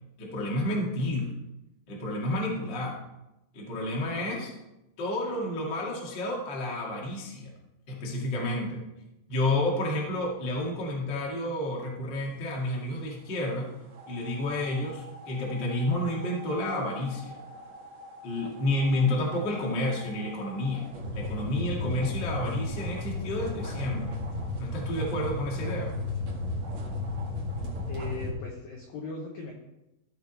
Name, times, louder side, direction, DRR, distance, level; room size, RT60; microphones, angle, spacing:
voice 1, 0.2-1.3 1.9-3.0 3.5-4.5 5.0-7.5 7.9-8.8 9.3-13.7 14.1-17.4 18.2-20.8 21.1-24.2 24.6-26.0, left 1 dB, 55° left, -2 dB, 1.2 m, -30 dB
voice 2, 4.0-4.5 19.3-19.5 27.9-29.5, left 3 dB, 85° left, 0 dB, 2.0 m, -39 dB
sound 1, 13.9-28.3, left 2 dB, 50° right, 2.3 m, -36 dB
15.0 x 5.9 x 4.2 m, 0.92 s
omnidirectional pair, 5.8 m